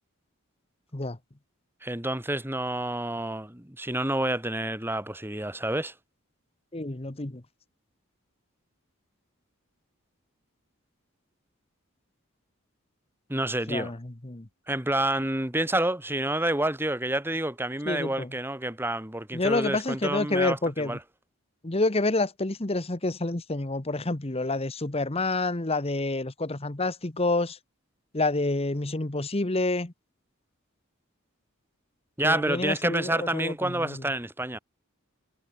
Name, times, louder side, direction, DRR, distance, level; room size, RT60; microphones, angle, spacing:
voice 1, 1.8-5.9 13.3-13.9 14.7-21.0 32.2-34.6, right 1 dB, 10° right, 2.8 m, -28 dB
voice 2, 6.7-7.4 13.7-14.0 14.2-14.4 17.9-18.3 19.3-20.9 21.6-27.6 28.1-29.9 32.2-34.0, left 2 dB, 30° left, 1.2 m, -28 dB
head